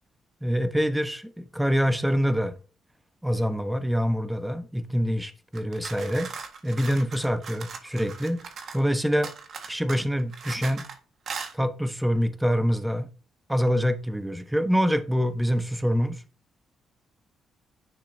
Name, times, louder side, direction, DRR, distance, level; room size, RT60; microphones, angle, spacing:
voice 1, 0.4-2.5 3.2-6.3 6.6-8.4 8.7-9.3 9.7-10.8 11.5-13.1 13.5-16.2, equal, 5° right, 1.1 m, -25 dB
sound 1, 5.5-8.9 9.2-11.0 11.3-11.5, right 5 dB, 60° right, 1.5 m, -39 dB
10.5 x 6.1 x 2.7 m
cardioid pair, 90°, 0 cm